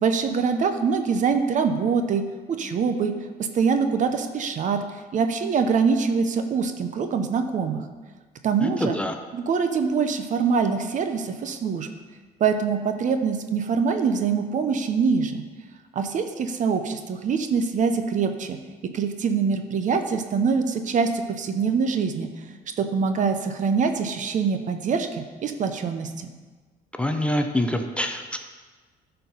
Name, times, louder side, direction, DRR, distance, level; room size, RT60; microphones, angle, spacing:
voice 1, 0.0-2.2 2.5-3.1 3.5-7.8 8.4-9.0 9.3-11.9 12.4-15.4 15.9-18.6 18.9-22.3 22.8-26.3, right 5 dB, 50° right, 7 dB, 0.8 m, -24 dB
voice 2, 8.6-9.1 27.0-28.4, left 1 dB, 5° left, 5 dB, 0.6 m, -25 dB
12.0 x 4.6 x 5.4 m, 1.4 s
cardioid pair, 110°, 17 cm